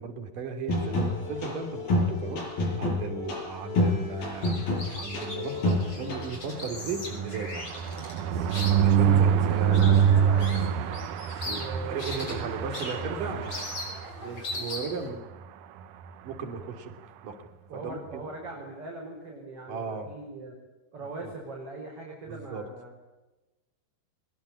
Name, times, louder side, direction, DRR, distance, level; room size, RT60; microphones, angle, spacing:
voice 1, 0.0-4.6 4.9-7.6 8.8-9.7 11.5-11.6 11.9-13.5 14.2-15.3 16.2-16.9 17.2-17.4 17.7-18.2 19.7-20.1 21.2-21.3 22.3-22.7, right 4 dB, 50° right, 7 dB, 4.2 m, -36 dB
sound 1, 0.7-6.3, left 2 dB, 55° left, 8.4 m, -28 dB
sound 2, 4.2-15.1, left 2 dB, 30° left, 7.0 m, -40 dB
sound 3, 5.8-14.6 15.0-15.2 15.4-15.5 15.8-16.1, right 8 dB, 75° right, 1.9 m, -26 dB
voice 2, 9.0-10.9 11.4-12.5 12.8-13.3 17.7-20.5 20.9-22.9, right 2 dB, 30° right, 1 dB, 6.1 m, -40 dB
24.0 x 21.0 x 9.8 m, 1.1 s
omnidirectional pair, 5.2 m